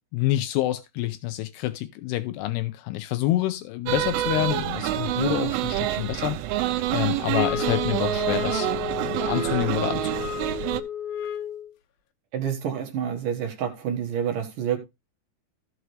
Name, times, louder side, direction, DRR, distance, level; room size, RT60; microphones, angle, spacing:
voice 1, 0.1-8.7 9.0-10.1, left 15 dB, 90° left, 2.3 m, -27 dB
sound 1, 3.9-10.8, right 13 dB, 90° right, 3.3 m, -27 dB
sound 2, 7.3-11.7, left 9 dB, 75° left, 2.4 m, -32 dB
voice 2, 12.3-14.8, right 8 dB, 60° right, 2.4 m, -28 dB
16.0 x 6.2 x 3.2 m
omnidirectional pair, 5.5 m